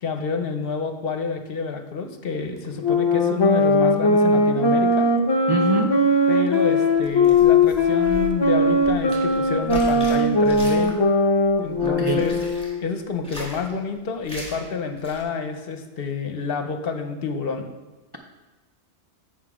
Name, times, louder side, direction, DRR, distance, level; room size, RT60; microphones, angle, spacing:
voice 1, 0.0-5.1 6.3-10.9 11.6-12.4 12.8-17.7, left 5 dB, 60° left, 6 dB, 0.9 m, -28 dB
sound 1, 2.8-12.8, left 2 dB, 35° left, 0.4 m, -19 dB
voice 2, 5.5-5.9 11.8-12.3, right 3 dB, 25° right, 0 dB, 0.6 m, -24 dB
sound 2, 7.0-11.1 11.4-12.7 13.1-13.7 14.2-14.6 14.9-15.2, left 1 dB, 5° left, 2.0 m, -39 dB
7.9 x 6.2 x 4.8 m, 1.2 s
omnidirectional pair, 1.2 m